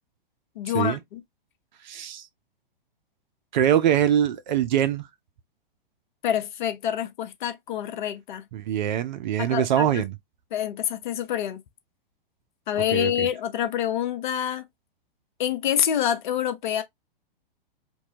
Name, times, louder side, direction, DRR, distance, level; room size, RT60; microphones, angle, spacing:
voice 1, 0.6-1.2 6.2-8.4 9.4-10.0 10.5-11.6 12.7-14.7 15.4-16.8, left 10 dB, 55° left, 0.7 m, -27 dB
voice 2, 1.8-2.3 3.5-5.1 8.5-10.2 12.9-13.3, right 10 dB, 50° right, 0.5 m, -23 dB
2.9 x 2.3 x 2.7 m
figure-of-eight pair, 115°, 29 cm